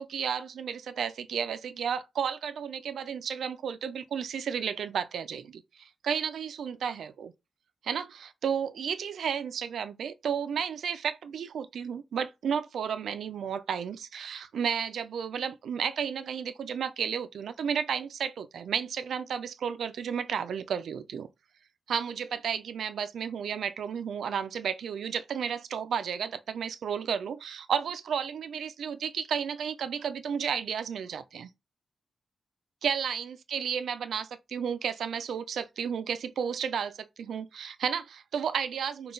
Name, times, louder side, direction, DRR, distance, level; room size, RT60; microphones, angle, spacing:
voice 1, 0.0-7.3 7.8-21.3 21.9-31.5 32.8-39.1, right 7 dB, 80° right, 0.4 m, -32 dB
3.7 x 2.3 x 3.8 m
wide cardioid pair, 155°, 0 cm